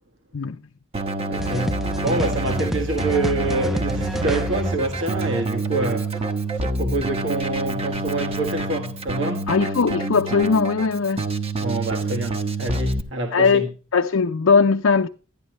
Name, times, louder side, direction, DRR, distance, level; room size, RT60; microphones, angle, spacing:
Keyboard (musical), 0.9-13.0, right 2 dB, 30° right, 1.1 m, -27 dB
voice 1, 1.3-9.5 11.6-13.7, right 2 dB, 65° right, 1.6 m, -27 dB
sound 1, 1.4-6.3, equal, ahead, 0.5 m, -28 dB
voice 2, 9.5-11.3 13.3-15.1, left 5 dB, 80° left, 0.6 m, -19 dB
12.0 x 10.5 x 3.0 m
head